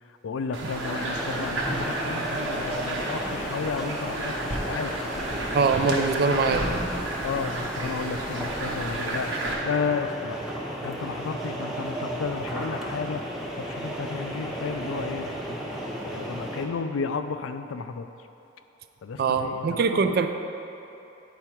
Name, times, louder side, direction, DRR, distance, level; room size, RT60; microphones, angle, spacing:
voice 1, 0.2-5.0 5.8-6.8 7.2-10.4 10.8-13.2 13.6-15.6 16.0-18.1 19.0-20.3, left 5 dB, 90° left, 9 dB, 0.4 m, -33 dB
sound 1, 0.5-9.5, right 1 dB, 75° right, 1.1 m, -32 dB
sound 2, 0.8-16.7, right 1 dB, ahead, 0.8 m, -34 dB
voice 2, 5.5-6.6 19.2-20.3, right 5 dB, 50° right, 8 dB, 0.4 m, -23 dB
9.4 x 4.7 x 4.4 m, 3.0 s
head